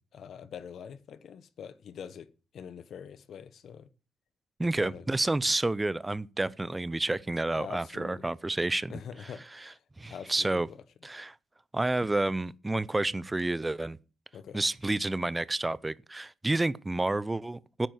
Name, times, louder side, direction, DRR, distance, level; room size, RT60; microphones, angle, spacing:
voice 1, 0.0-2.3 2.5-3.9 4.8-5.0 7.5-8.3 8.9-9.7 10.1-10.8 14.3-14.6, left 7 dB, 55° left, 1.1 m, -44 dB
voice 2, 4.6-9.0 9.6-9.7 10.0-10.7 11.0-11.3 11.7-14.0 14.5-17.9, right 2 dB, 10° right, 0.5 m, -30 dB
10.5 x 9.0 x 7.9 m
cardioid pair, 150°, 0 cm